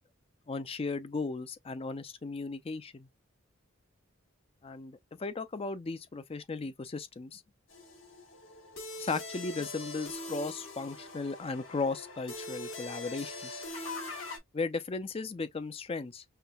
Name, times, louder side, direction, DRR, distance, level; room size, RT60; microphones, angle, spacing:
voice 1, 0.5-3.1 4.6-7.4 9.0-13.6 14.5-16.2, left 3 dB, 30° left, 0.4 m, -36 dB
sound 1, 7.7-14.4, left 2 dB, 70° left, 1.4 m, -42 dB
5.7 x 2.1 x 2.3 m
head